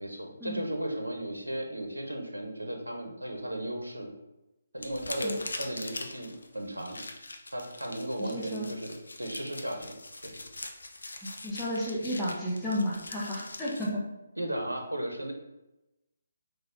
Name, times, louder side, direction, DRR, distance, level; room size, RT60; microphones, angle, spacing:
voice 1, 0.0-4.1 4.7-7.0 7.5-10.0 10.2-10.4 14.4-15.3, right 1 dB, 90° right, 3 dB, 0.8 m, -35 dB
sound 1, 4.8-13.9, left 2 dB, 70° left, 0.6 m, -42 dB
voice 2, 8.2-8.7 11.2-14.0, equal, 5° left, -9 dB, 1.0 m, -32 dB
3.9 x 2.6 x 4.4 m, 0.96 s
figure-of-eight pair, 145°, 0 cm